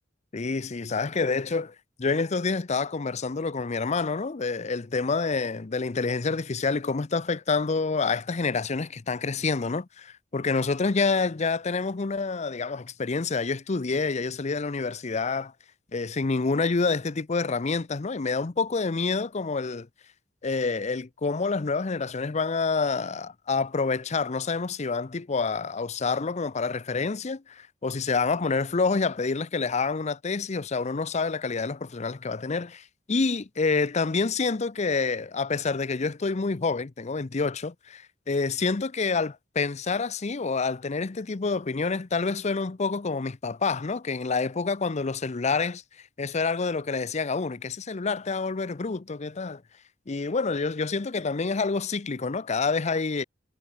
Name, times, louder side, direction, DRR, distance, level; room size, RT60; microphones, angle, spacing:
voice 1, 0.3-1.7 2.0-15.5 15.9-19.9 20.4-45.8 46.2-49.6 50.1-53.2, left 4 dB, 35° left, 0.6 m, -27 dB
head